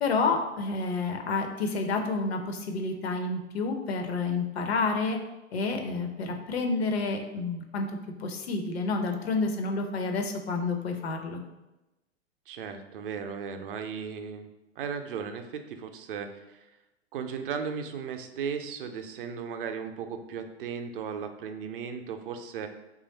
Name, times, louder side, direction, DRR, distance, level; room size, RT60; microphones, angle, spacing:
voice 1, 0.0-5.2 5.5-11.4, left 3 dB, 65° left, 4 dB, 0.6 m, -29 dB
voice 2, 12.5-14.5 14.8-16.7 17.1-22.7, right 6 dB, 50° right, 6 dB, 0.5 m, -36 dB
3.1 x 2.4 x 4.0 m, 0.99 s
figure-of-eight pair, 95°, 34 cm